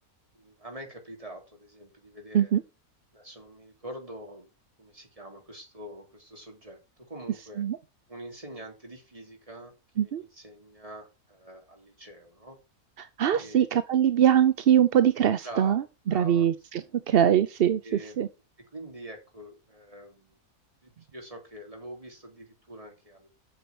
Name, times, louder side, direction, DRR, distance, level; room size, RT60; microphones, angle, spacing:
voice 1, 0.3-2.5 3.1-4.5 4.8-7.6 8.1-12.6 13.3-13.7 15.4-16.5 17.8-18.3 18.7-20.4 20.8-23.3, right 1 dB, 20° right, 3.2 m, -45 dB
voice 2, 13.0-17.8 18.2-18.3, right 9 dB, 55° right, 0.6 m, -23 dB
8.5 x 6.7 x 5.9 m
omnidirectional pair, 1.6 m